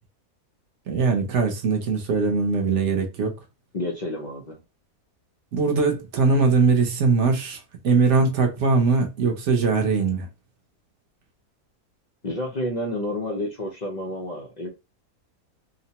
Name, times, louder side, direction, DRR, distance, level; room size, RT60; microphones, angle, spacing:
voice 1, 0.9-3.4 5.5-10.3, right 4 dB, 60° right, 0.9 m, -21 dB
voice 2, 3.7-4.6 12.2-14.7, left 1 dB, 75° left, 0.4 m, -30 dB
2.9 x 2.0 x 2.8 m
omnidirectional pair, 1.6 m